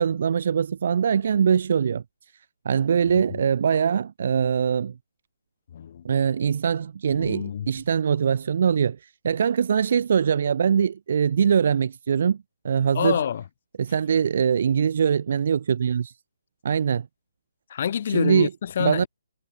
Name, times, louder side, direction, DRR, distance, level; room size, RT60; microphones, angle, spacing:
voice 1, 0.0-2.0 2.6-4.9 6.0-12.4 12.6-13.2 13.8-16.1 16.6-17.1 18.1-18.5 18.8-19.0, right 7 dB, 55° right, 1.2 m, -22 dB
voice 2, 5.7-6.0 7.1-7.7 12.9-13.4 17.7-19.1, left 8 dB, 45° left, 5.3 m, -27 dB
hypercardioid pair, 150°, 0 cm